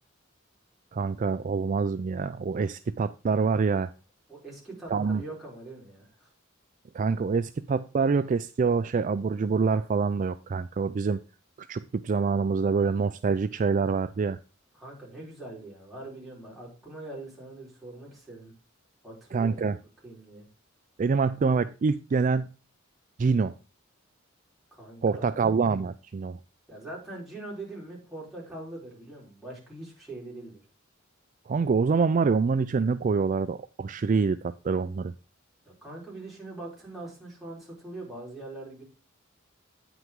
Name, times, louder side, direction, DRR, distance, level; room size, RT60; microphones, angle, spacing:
voice 1, 0.9-3.9 4.9-5.2 6.9-11.2 11.7-14.4 19.3-19.8 21.0-22.5 23.2-23.5 25.0-26.4 31.5-35.1, right 5 dB, 40° right, 12 dB, 0.4 m, -26 dB
voice 2, 4.3-6.3 14.7-18.5 19.0-19.7 20.0-20.4 24.7-25.3 26.7-30.6 35.6-38.8, right 2 dB, ahead, -6 dB, 4.5 m, -42 dB
9.2 x 6.0 x 3.6 m, 0.33 s
head